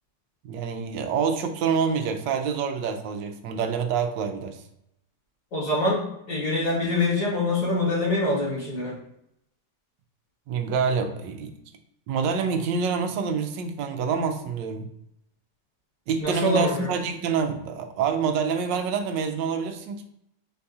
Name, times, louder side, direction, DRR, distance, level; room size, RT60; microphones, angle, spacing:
voice 1, 0.4-4.6 10.5-11.5 12.1-14.9 16.1-20.0, right 6 dB, 90° right, 7 dB, 1.3 m, -27 dB
voice 2, 5.5-6.0 6.3-9.0 16.2-17.0, left 2 dB, 50° left, -5 dB, 1.8 m, -25 dB
4.5 x 2.7 x 3.4 m, 0.78 s
omnidirectional pair, 1.9 m